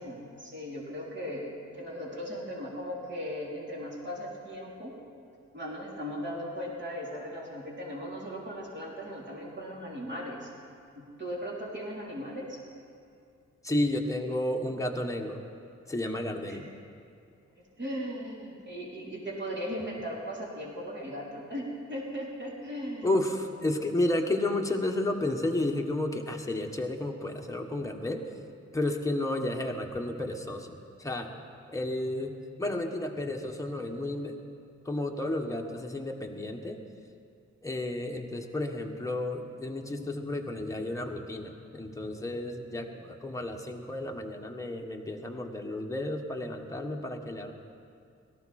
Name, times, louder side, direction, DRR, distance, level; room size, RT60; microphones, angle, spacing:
voice 1, 0.0-5.0 5.5-10.5 10.9-12.6 16.4-16.6 17.8-23.1, equal, 35° right, -5 dB, 3.9 m, -38 dB
voice 2, 13.6-15.4 15.9-16.7 23.0-28.2 28.7-31.3 31.7-32.3 32.6-34.3 34.8-36.8 37.6-47.5, left 1 dB, 10° left, 2 dB, 1.5 m, -32 dB
17.5 x 13.5 x 4.4 m, 2.4 s
cardioid pair, 60°, 31 cm